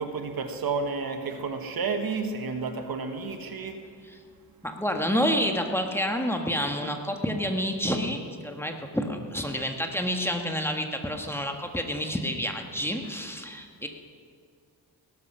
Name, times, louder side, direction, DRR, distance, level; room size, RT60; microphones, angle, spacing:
voice 1, 0.0-3.8, right 4 dB, 65° right, 7 dB, 1.3 m, -31 dB
voice 2, 4.6-13.9, equal, 5° left, 3 dB, 1.5 m, -29 dB
18.5 x 12.0 x 5.6 m, 2.2 s
cardioid pair, 85°, 38 cm